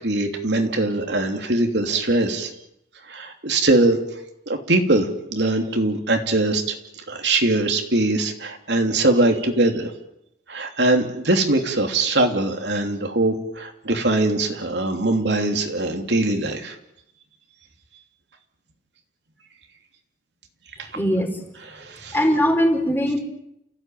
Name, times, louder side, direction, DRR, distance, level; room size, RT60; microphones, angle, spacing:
voice 1, 0.0-2.5 3.1-4.0 4.5-6.6 7.1-9.9 10.5-16.7 21.7-22.2, right 2 dB, 70° right, 4 dB, 3.1 m, -21 dB
voice 2, 20.9-21.4 22.1-23.2, equal, 10° left, 4 dB, 4.8 m, -20 dB
29.5 x 16.0 x 9.3 m, 0.81 s
head